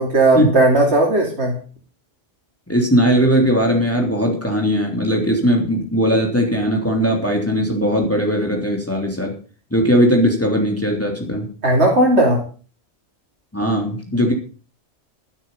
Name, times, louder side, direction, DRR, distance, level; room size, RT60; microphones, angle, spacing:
voice 1, 0.0-1.6 11.6-12.4, right 2 dB, 60° right, 0 dB, 3.2 m, -16 dB
voice 2, 2.7-9.3 9.7-11.5 13.5-14.3, equal, 10° left, 1 dB, 3.3 m, -18 dB
12.5 x 12.5 x 5.6 m, 0.39 s
omnidirectional pair, 1.2 m